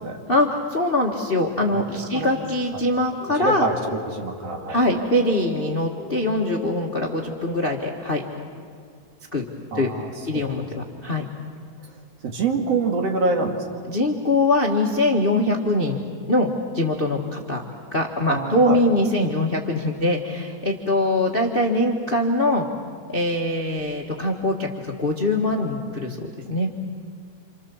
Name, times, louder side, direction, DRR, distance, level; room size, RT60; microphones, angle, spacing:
voice 1, 0.3-3.7 4.7-8.2 9.3-9.4 9.7-9.9 10.3-11.3 13.9-16.0 16.3-17.6 17.9-22.7 23.1-26.7, left 1 dB, 25° left, 1 dB, 1.2 m, -22 dB
sound 1, 3.2-8.4, left 5 dB, 15° right, 3.9 m, -39 dB
voice 2, 3.3-3.8 4.0-4.8 9.7-10.7 12.2-13.8 18.3-18.8, right 3 dB, 55° right, 2 dB, 3.2 m, -26 dB
28.5 x 28.0 x 7.2 m, 2.1 s
omnidirectional pair, 3.5 m